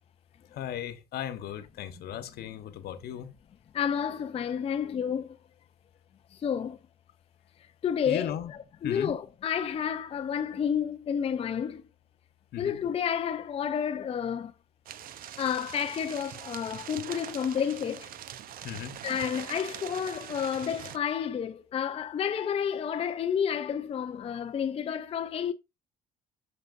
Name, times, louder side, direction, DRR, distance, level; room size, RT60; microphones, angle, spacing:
voice 1, 0.5-3.3 8.0-8.5 8.8-9.2 12.5-12.7 18.6-19.0, left 10 dB, 70° left, 1.1 m, -36 dB
voice 2, 3.7-5.4 6.3-6.8 7.8-11.8 12.6-14.5 15.4-18.1 19.0-25.5, left 8 dB, 35° left, 0.5 m, -30 dB
sound 1, 14.9-21.0, right 10 dB, 60° right, 0.7 m, -43 dB
7.8 x 6.4 x 2.5 m
cardioid pair, 110°, 17 cm